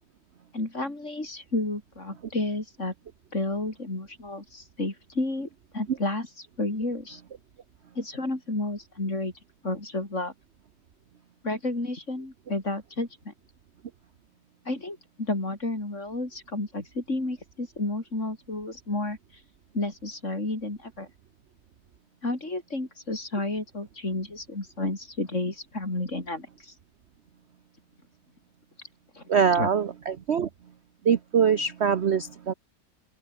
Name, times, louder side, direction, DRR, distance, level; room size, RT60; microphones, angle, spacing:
voice 1, 0.5-2.9 3.3-5.5 5.7-7.2 8.0-9.3 9.6-10.3 11.4-13.3 14.7-19.2 19.7-21.1 22.2-26.7 29.1-29.7, left 2 dB, 40° left, 5.6 m, -31 dB
voice 2, 29.3-30.5 31.0-32.5, right 7 dB, 50° right, 0.9 m, -23 dB
omnidirectional pair, 1.9 m